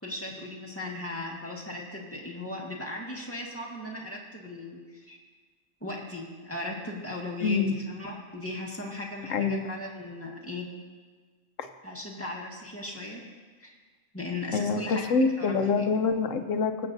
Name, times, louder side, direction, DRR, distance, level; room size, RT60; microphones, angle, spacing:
voice 1, 0.0-5.2 5.8-10.7 11.8-13.2 13.6-13.7 14.1-15.0 15.4-16.0, left 2 dB, 10° left, -3 dB, 1.6 m, -37 dB
voice 2, 7.4-7.8 9.3-9.7 11.6-11.7 14.5-16.9, left 4 dB, 70° left, 7 dB, 1.1 m, -26 dB
23.0 x 8.0 x 2.6 m, 1.5 s
omnidirectional pair, 1.4 m